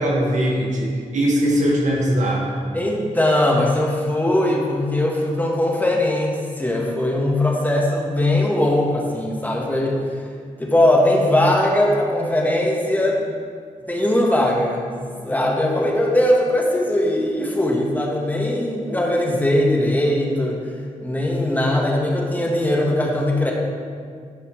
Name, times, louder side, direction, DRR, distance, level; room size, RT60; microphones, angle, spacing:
voice 1, 0.0-2.6, equal, 65° right, -3 dB, 1.9 m, -20 dB
voice 2, 2.7-10.2 10.6-13.3 13.9-20.6 21.0-23.5, left 1 dB, 10° left, -1 dB, 1.5 m, -20 dB
11.0 x 5.5 x 3.3 m, 2.1 s
cardioid pair, 70°, 13 cm